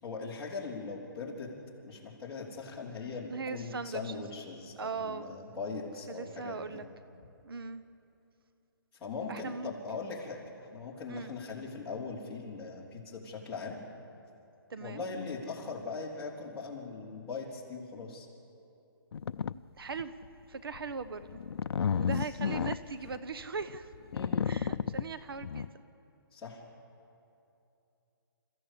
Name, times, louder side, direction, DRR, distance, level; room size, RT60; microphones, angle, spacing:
voice 1, 0.0-1.5 1.8-6.8 9.0-13.8 14.8-18.3 22.2-22.3 24.1-24.5 26.3-26.6, left 4 dB, 10° left, -8 dB, 3.5 m, -40 dB
voice 2, 3.3-4.1 4.8-5.4 6.1-6.8 7.4-7.8 9.3-10.0 11.1-11.3 14.7-15.1 19.8-20.1 20.5-21.4 21.9-23.9 24.4-25.7, right 4 dB, 70° right, 12 dB, 1.1 m, -39 dB
sound 1, 19.1-19.5 20.0-20.2 20.7-25.7, left 7 dB, 85° left, 0.5 m, -32 dB
29.0 x 15.0 x 8.5 m, 2.7 s
hypercardioid pair, 175°, 13 cm